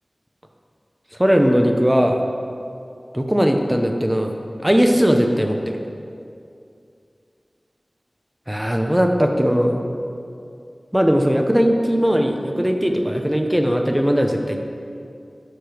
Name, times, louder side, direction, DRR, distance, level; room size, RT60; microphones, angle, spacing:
voice 1, 1.2-2.2 3.1-5.8 8.5-9.8 10.9-14.6, equal, 10° right, 3 dB, 0.9 m, -19 dB
12.0 x 5.0 x 5.1 m, 2.5 s
wide cardioid pair, 45°, 0 cm